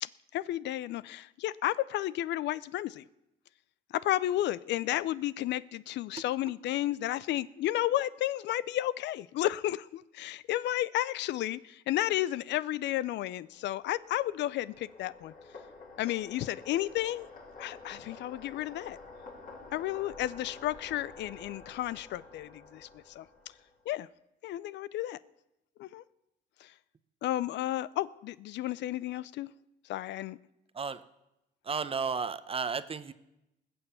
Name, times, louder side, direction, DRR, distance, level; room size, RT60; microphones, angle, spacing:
voice 1, 0.0-3.0 3.9-15.3 16.0-17.3 17.6-19.0 19.7-23.3 23.9-24.1 24.4-25.2 25.8-26.0 26.6-26.7 27.2-29.5 29.9-30.4, left 14 dB, 70° left, 0.4 m, -32 dB
sound 1, 13.3-23.8, left 3 dB, 45° left, 4.4 m, -50 dB
voice 2, 31.6-33.1, right 5 dB, 30° right, 0.8 m, -33 dB
20.0 x 7.0 x 7.0 m
cardioid pair, 90°, 19 cm